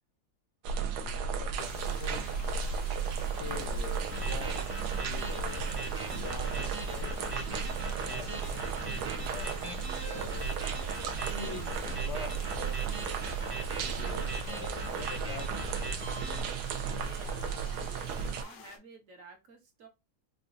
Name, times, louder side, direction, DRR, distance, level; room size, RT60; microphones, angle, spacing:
sound 1, 0.6-18.4, right 5 dB, 90° right, 1.2 m, -34 dB
voice 1, 1.0-2.4 3.0-11.0 11.3-13.3 13.7-15.8, left 5 dB, 60° left, 0.8 m, -46 dB
sound 2, 1.6-18.8, left 6 dB, 80° left, 1.3 m, -51 dB
sound 3, 4.0-16.4, right 2 dB, 30° right, 0.7 m, -40 dB
voice 2, 16.8-19.9, right 3 dB, 60° right, 1.2 m, -52 dB
4.9 x 2.3 x 2.5 m
omnidirectional pair, 1.7 m